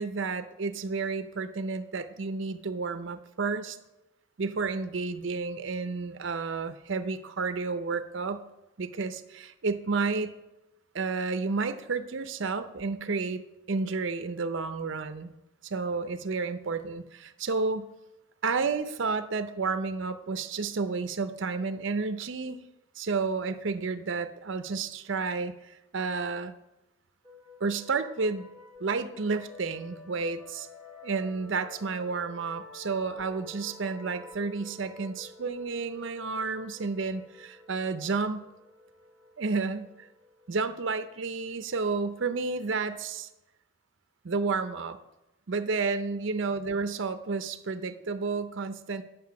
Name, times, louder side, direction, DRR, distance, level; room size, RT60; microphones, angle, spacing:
voice 1, 0.0-3.8 4.4-8.4 8.8-10.3 10.9-15.3 15.6-17.9 18.4-22.6 23.0-26.5 27.6-28.5 28.8-30.7 31.0-38.5 39.4-39.9 40.5-43.3 44.2-45.0 45.5-49.0, right 4 dB, 65° right, 10 dB, 0.6 m, -31 dB
sound 1, 27.2-42.6, left 3 dB, 15° left, 1.7 m, -51 dB
9.5 x 6.6 x 5.8 m, 0.96 s
head